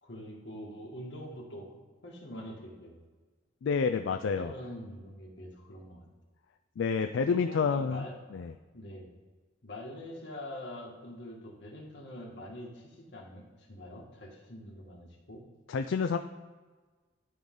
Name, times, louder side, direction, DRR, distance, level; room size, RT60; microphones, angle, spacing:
voice 1, 0.0-1.7 2.0-3.0 4.4-6.1 7.3-8.1 8.7-9.1 9.6-15.4, left 1 dB, 70° left, -2 dB, 1.9 m, -44 dB
voice 2, 3.6-4.5 6.8-8.0 8.3-8.5 15.7-16.2, left 5 dB, 85° left, 7 dB, 0.4 m, -28 dB
12.0 x 4.0 x 3.8 m, 1.4 s
head